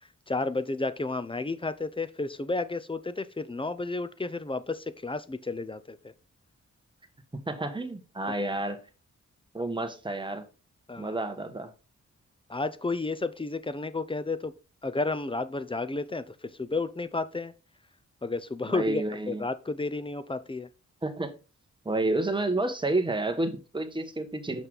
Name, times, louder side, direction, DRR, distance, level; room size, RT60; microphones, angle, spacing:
voice 1, 0.3-6.0 10.9-11.2 12.5-14.5 14.8-17.5 18.2-20.7, left 3 dB, 15° left, 0.6 m, -32 dB
voice 2, 7.5-8.8 9.5-10.4 11.0-11.7 18.7-19.4 21.0-21.3 21.8-24.7, right 2 dB, 15° right, 1.2 m, -30 dB
6.2 x 5.6 x 3.8 m
cardioid pair, 80°, 30 cm